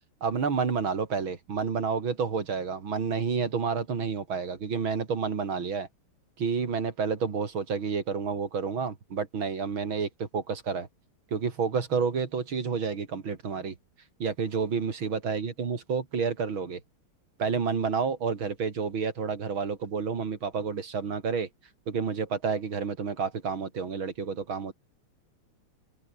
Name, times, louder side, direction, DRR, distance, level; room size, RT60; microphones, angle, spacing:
voice 1, 0.2-5.9 6.4-10.9 11.3-13.7 14.2-16.8 17.4-21.5 21.9-24.7, right 5 dB, 70° right, 3.4 m, -30 dB
omnidirectional pair, 2.4 m